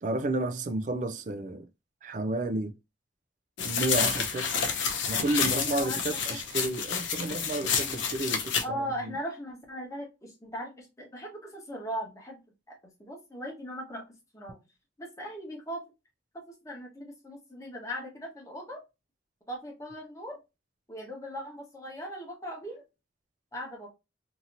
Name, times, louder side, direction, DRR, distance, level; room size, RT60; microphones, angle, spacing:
voice 1, 0.0-1.7 2.0-2.7 3.6-4.7 5.1-9.1, right 2 dB, 40° right, 0.3 m, -31 dB
sound 1, 3.6-8.6, left 6 dB, 80° left, 0.6 m, -29 dB
voice 2, 5.5-6.4 8.6-12.4 12.7-14.6 15.0-15.8 16.3-18.8 19.5-20.4 20.9-22.8 23.5-23.9, equal, 15° left, 1.0 m, -39 dB
2.8 x 2.7 x 2.5 m
head